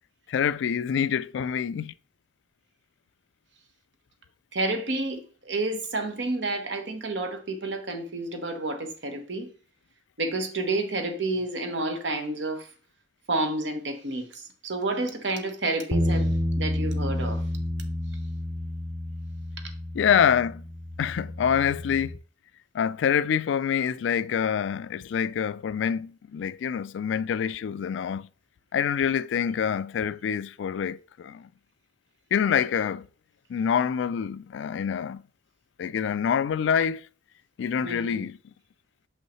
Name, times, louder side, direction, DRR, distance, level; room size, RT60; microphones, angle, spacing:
voice 1, 0.3-1.9 19.9-20.6 21.0-22.2 22.7-28.3 28.7-31.5 32.3-33.1 33.5-35.2 35.8-37.0 37.6-38.4, left 8 dB, 70° left, 0.3 m, -26 dB
voice 2, 4.5-9.5 10.2-12.7 13.3-17.4 37.8-38.3, right 2 dB, 65° right, 1.1 m, -30 dB
sound 1, 15.9-22.2, equal, 10° right, 0.4 m, -30 dB
6.3 x 5.5 x 3.1 m
head